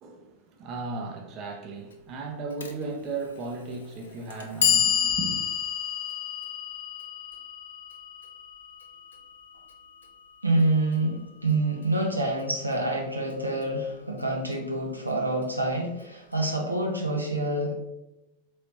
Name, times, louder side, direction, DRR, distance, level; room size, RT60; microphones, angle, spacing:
voice 1, 0.0-5.5, right 3 dB, 35° right, 0.6 m, -36 dB
Clock, 2.6-2.7 3.7-3.8 4.3-10.3, left 9 dB, 65° left, 0.4 m, -30 dB
voice 2, 10.4-17.8, right 2 dB, 85° right, 0.7 m, -27 dB
4.0 x 3.1 x 2.9 m
figure-of-eight pair, 90°, 0 cm